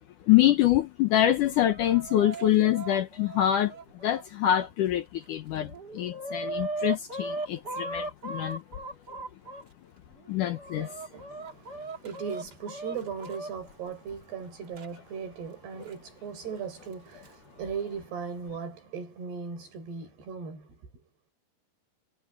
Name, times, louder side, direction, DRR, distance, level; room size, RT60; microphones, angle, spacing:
voice 1, 0.2-3.7 4.0-8.6 10.3-10.9, left 12 dB, 70° left, 2.0 m, -25 dB
Chicken rooster, 1.2-4.7 5.2-5.3 5.6-9.6 10.2-13.5 14.8-14.9 15.9-16.0 16.9-17.3, right 2 dB, 30° right, 2.2 m, -38 dB
voice 2, 10.8-20.7, right 6 dB, 85° right, 7.7 m, -38 dB
omnidirectional pair, 4.6 m